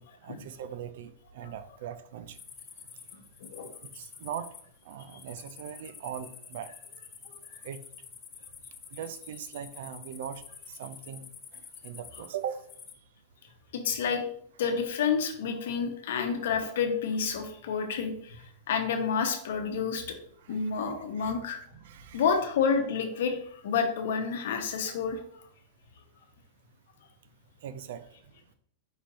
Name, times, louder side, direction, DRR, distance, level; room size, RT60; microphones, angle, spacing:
voice 1, 0.0-2.4 3.9-4.5 4.9-6.7 7.6-7.8 8.9-11.3 11.5-12.6 20.4-21.4 21.7-22.3 27.6-28.0, right 9 dB, 65° right, 12 dB, 0.4 m, -40 dB
sound 1, 2.3-12.9, left 6 dB, 20° left, 0.4 m, -48 dB
voice 2, 7.2-7.6 13.7-14.2 14.6-20.2 20.5-21.6 22.1-25.2, left 6 dB, 75° left, 6 dB, 0.9 m, -29 dB
4.9 x 2.5 x 4.2 m, 0.64 s
supercardioid pair, 160°, 0 cm